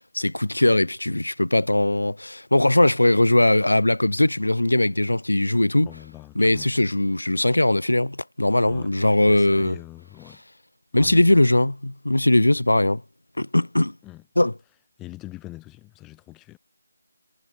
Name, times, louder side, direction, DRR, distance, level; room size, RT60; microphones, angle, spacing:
voice 1, 0.1-5.9 6.4-9.8 10.9-13.0 13.4-13.9 14.4-14.5, left 1 dB, 85° left, 1.9 m, -20 dB
voice 2, 5.8-6.7 8.6-10.4 10.9-11.5 14.0-14.3 15.0-16.6, left 18 dB, 10° left, 3.9 m, -42 dB
figure-of-eight pair, 160°, 0 cm